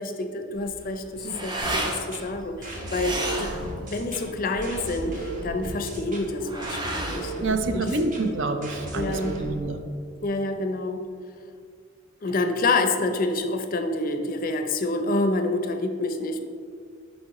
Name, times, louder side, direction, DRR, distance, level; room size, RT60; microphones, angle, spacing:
voice 1, 0.0-3.5 3.9-8.0 8.9-9.4 10.2-11.0 12.2-16.4, left 2 dB, 45° left, 6 dB, 0.5 m, -27 dB
sound 1, 0.5-8.4, right 1 dB, 20° right, 0.6 m, -34 dB
sound 2, 1.6-9.6, right 1 dB, 40° right, 1.0 m, -36 dB
voice 2, 7.4-9.8, right 3 dB, 65° right, 7 dB, 0.5 m, -27 dB
7.4 x 5.2 x 3.0 m, 2.2 s
head